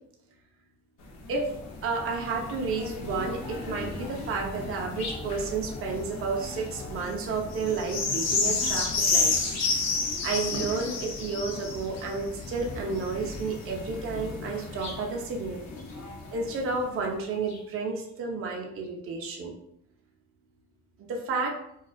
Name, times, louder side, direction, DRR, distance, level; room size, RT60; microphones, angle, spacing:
sound 1, 1.0-16.9 17.5-17.6, left 3 dB, 60° left, 0.6 m, -32 dB
voice 1, 1.8-9.6 10.2-15.7 16.3-19.5 21.0-21.6, right 4 dB, 45° right, 0 dB, 0.5 m, -31 dB
2.3 x 2.2 x 2.3 m, 0.74 s
cardioid pair, 90°, 30 cm